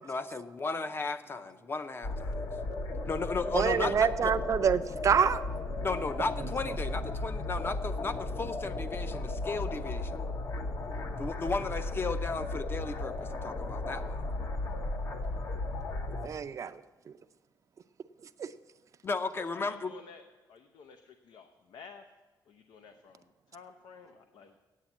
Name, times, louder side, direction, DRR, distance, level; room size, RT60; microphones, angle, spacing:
voice 1, 0.0-2.4 3.1-4.3 5.8-10.2 11.2-14.2 19.0-19.9, left 3 dB, 30° left, 11 dB, 0.6 m, -35 dB
sound 1, 2.0-16.3, left 2 dB, 55° left, 0.9 m, -35 dB
voice 2, 3.5-5.4 16.2-16.8 18.4-18.5, right 7 dB, 45° right, 12 dB, 0.4 m, -26 dB
voice 3, 19.5-20.2 20.5-22.0 22.5-23.2 23.5-24.5, left 5 dB, 85° left, 7 dB, 0.6 m, -52 dB
9.0 x 7.9 x 7.2 m, 1.3 s
cardioid pair, 115°, 7 cm